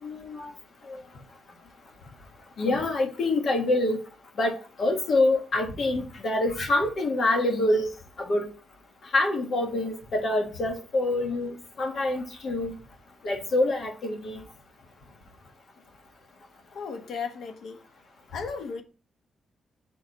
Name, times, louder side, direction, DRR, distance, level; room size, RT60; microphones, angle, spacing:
voice 1, 0.0-0.5 0.9-1.0 2.6-4.0 4.4-7.9 8.2-8.5 9.1-12.7 13.2-14.4, left 2 dB, 45° left, 1.6 m, -26 dB
voice 2, 16.7-17.8 18.3-18.8, left 5 dB, 75° left, 1.2 m, -35 dB
6.1 x 4.8 x 4.1 m
wide cardioid pair, 175°, 0 cm